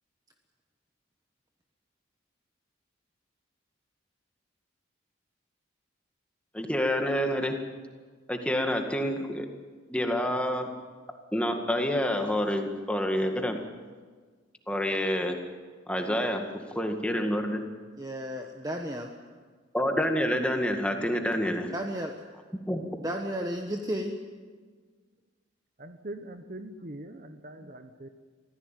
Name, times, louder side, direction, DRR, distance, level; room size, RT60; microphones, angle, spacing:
voice 1, 6.5-7.6 8.3-9.5 9.9-10.7 11.3-13.6 14.7-15.4 15.9-16.4 16.8-17.6 19.7-21.7 22.7-22.8, equal, 5° left, 4 dB, 2.0 m, -28 dB
voice 2, 18.0-19.1 21.7-22.2 23.0-24.2 27.6-27.7, equal, 20° right, 3 dB, 1.2 m, -33 dB
voice 3, 25.8-28.1, right 1 dB, 45° right, 8 dB, 1.1 m, -42 dB
24.5 x 16.0 x 9.2 m, 1.5 s
head